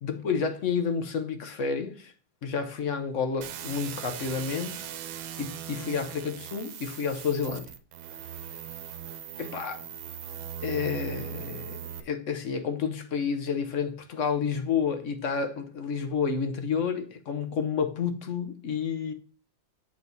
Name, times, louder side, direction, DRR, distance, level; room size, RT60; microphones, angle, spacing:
voice 1, 0.0-2.1 2.4-4.9 5.4-7.7 8.4-8.5 9.4-9.8 10.6-19.1, left 6 dB, 55° left, 0.9 m, -30 dB
sound 1, 3.4-12.0, right 9 dB, 85° right, 1.5 m, -39 dB
8.0 x 3.9 x 6.0 m
omnidirectional pair, 2.1 m